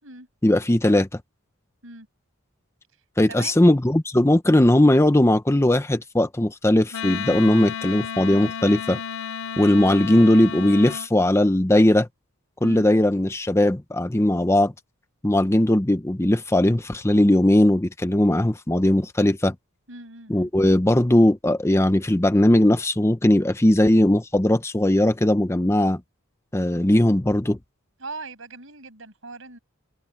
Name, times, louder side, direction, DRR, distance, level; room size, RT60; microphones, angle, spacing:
voice 1, 0.4-1.2 3.2-9.0 9.6-12.1 12.6-14.7 15.2-19.5 20.3-26.0 26.5-27.6, left 1 dB, 15° left, 0.7 m, -19 dB
voice 2, 3.3-3.6 12.6-12.9 19.9-20.5 28.0-29.6, right 3 dB, 65° right, 7.8 m, -39 dB
Wind instrument woodwind instrument, 6.9-11.1, left 7 dB, 80° left, 3.9 m, -32 dB
head